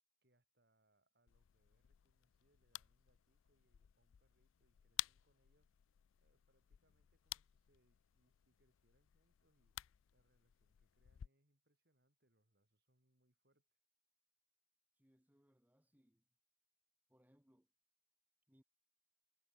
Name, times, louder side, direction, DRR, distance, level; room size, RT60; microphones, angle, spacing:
voice 1, 0.2-5.7 6.2-9.8 10.1-13.8, right 1 dB, 55° right, 3.6 m, -81 dB
sound 1, 1.3-11.3, left 16 dB, 85° left, 0.4 m, -53 dB
voice 2, 14.9-16.3 17.1-17.7 18.5-18.6, equal, 10° right, 1.2 m, -73 dB
head